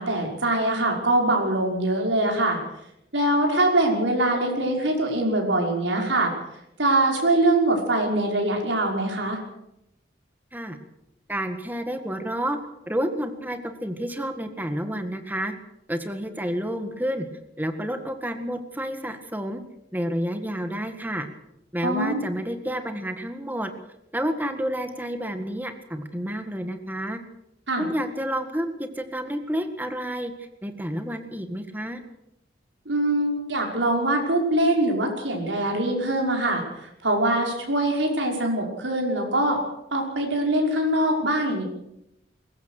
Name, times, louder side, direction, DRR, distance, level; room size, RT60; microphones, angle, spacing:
voice 1, 0.0-2.6 3.1-6.3 6.8-9.4 21.8-22.2 27.7-27.9 32.9-39.6 39.9-41.6, right 1 dB, 80° right, 1 dB, 5.7 m, -23 dB
voice 2, 11.3-12.6 12.9-15.5 15.9-17.3 17.6-19.6 19.9-21.3 21.7-23.7 24.1-27.2 27.8-32.0, equal, 10° right, 7 dB, 1.8 m, -30 dB
22.0 x 19.0 x 6.6 m, 0.85 s
head